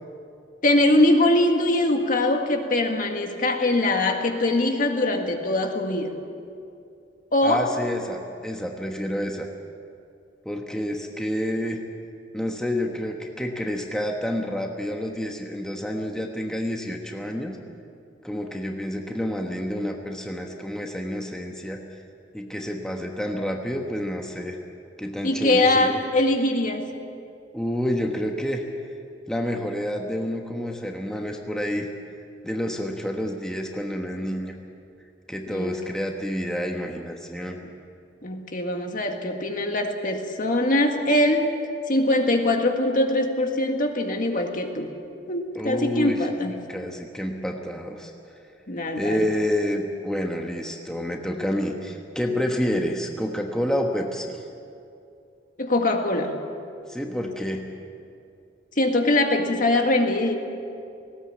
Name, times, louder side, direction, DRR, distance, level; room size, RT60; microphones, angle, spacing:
voice 1, 0.6-6.1 7.3-7.6 25.2-26.9 35.5-35.7 38.2-41.5 41.9-44.9 45.3-46.6 48.7-49.3 55.6-56.4 58.8-60.3, left 1 dB, 45° left, 4 dB, 1.9 m, -22 dB
voice 2, 7.4-9.5 10.4-11.8 12.3-17.6 18.2-21.8 22.3-24.6 25.0-26.0 27.5-28.6 29.3-31.9 32.4-34.5 35.3-37.6 45.5-46.3 46.7-48.1 48.9-54.4 56.9-57.7, equal, 5° left, 1 dB, 1.2 m, -28 dB
19.0 x 17.5 x 8.6 m, 2.5 s
head